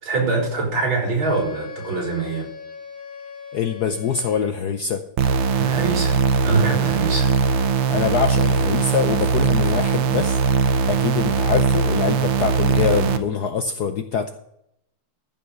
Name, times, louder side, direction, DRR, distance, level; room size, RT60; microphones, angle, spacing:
voice 1, 0.0-2.5 5.5-7.3, right 3 dB, 65° right, -1 dB, 5.0 m, -24 dB
Wind instrument woodwind instrument, 1.2-4.8, left 6 dB, 45° left, 3.0 m, -39 dB
voice 2, 3.5-5.0 7.9-10.4 10.9-14.3, left 7 dB, 65° left, 8 dB, 1.0 m, -24 dB
sound 1, 5.2-13.2, right 5 dB, 90° right, 1.8 m, -20 dB
14.5 x 5.6 x 6.8 m, 0.77 s
omnidirectional pair, 2.4 m